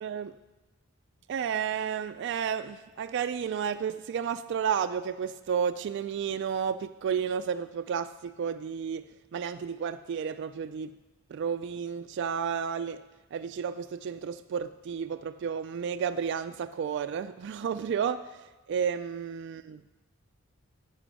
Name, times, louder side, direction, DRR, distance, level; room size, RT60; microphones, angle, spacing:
voice 1, 0.0-0.3 1.3-10.9 11.3-13.0 13.3-19.8, right 7 dB, 55° right, 10 dB, 0.3 m, -32 dB
11.0 x 7.6 x 6.2 m, 1.2 s
head